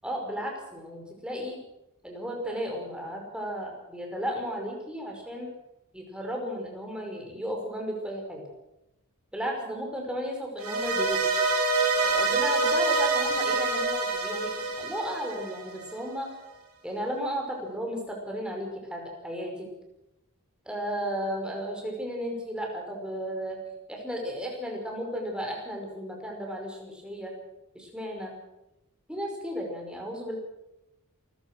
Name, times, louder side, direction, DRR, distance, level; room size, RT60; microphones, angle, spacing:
voice 1, 0.0-1.6 2.0-5.5 5.9-8.4 9.3-11.2 12.0-16.3 16.8-19.7 20.7-23.6 23.9-27.3 27.7-28.3 29.1-30.4, equal, 5° right, 0 dB, 5.6 m, -34 dB
sound 1, 10.6-15.8, right 3 dB, 70° right, 5.8 m, -26 dB
28.0 x 15.5 x 6.3 m, 0.91 s
head